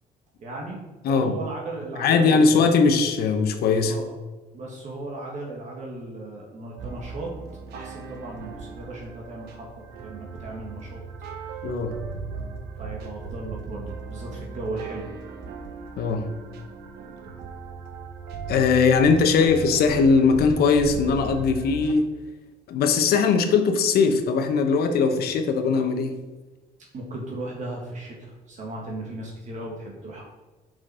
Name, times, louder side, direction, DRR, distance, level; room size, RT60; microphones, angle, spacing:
voice 1, 0.4-2.7 3.8-4.1 4.5-7.3 7.7-11.0 11.5-11.6 12.8-15.2 26.9-30.2, right 2 dB, 45° right, -1 dB, 1.6 m, -36 dB
voice 2, 2.0-3.9 11.6-11.9 16.0-16.3 18.5-22.0 22.7-26.2, left 5 dB, 65° left, 7 dB, 1.0 m, -20 dB
sound 1, 6.8-21.9, right 4 dB, 75° right, 1.1 m, -38 dB
6.0 x 5.1 x 4.9 m, 1.2 s
cardioid pair, 110°, 17 cm